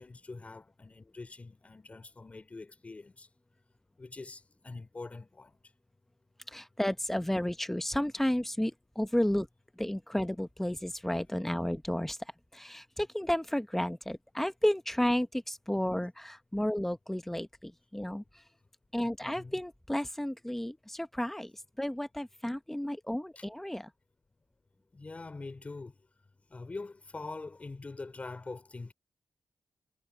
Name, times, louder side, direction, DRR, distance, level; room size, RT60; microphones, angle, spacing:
voice 1, 0.0-3.3 4.0-5.6 19.2-19.6 23.4-23.5 24.9-26.0 26.5-28.9, left 3 dB, 30° left, 3.4 m, -44 dB
voice 2, 6.5-9.5 9.8-12.2 12.5-18.4 18.9-23.9, left 1 dB, 5° left, 1.0 m, -32 dB
wide cardioid pair, 120°, 5 cm